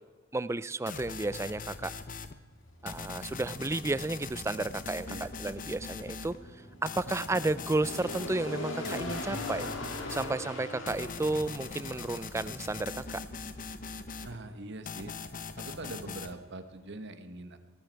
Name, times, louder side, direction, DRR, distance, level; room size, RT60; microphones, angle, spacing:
voice 1, 0.3-1.9 2.8-6.3 6.8-9.7 10.1-13.2, right 2 dB, 15° right, 16 dB, 0.3 m, -32 dB
sound 1, 0.9-2.3 2.9-6.4 6.9-8.3 8.8-10.3 10.9-14.4 14.9-16.3, left 4 dB, 40° left, 0.8 m, -41 dB
sound 2, 2.5-17.0, left 2 dB, 65° left, 2.6 m, -43 dB
voice 2, 14.2-15.1 15.6-17.6, right 2 dB, 60° right, 9 dB, 1.2 m, -43 dB
19.0 x 14.5 x 4.6 m, 1.5 s
head